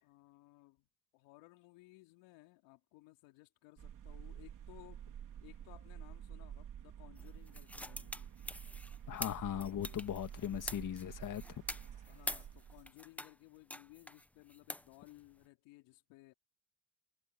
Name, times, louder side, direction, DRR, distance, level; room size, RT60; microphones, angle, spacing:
voice 1, 0.0-5.1 5.4-8.3 9.5-10.1 12.1-16.3, left 21 dB, 75° left, 3.9 m, -60 dB
sound 1, 3.8-12.9, right 9 dB, 45° right, 3.5 m, -50 dB
sound 2, 7.2-13.3 13.7-15.5, left 1 dB, 5° left, 0.9 m, -45 dB
voice 2, 9.1-11.6, left 11 dB, 45° left, 2.0 m, -39 dB
supercardioid pair, 105°, 44 cm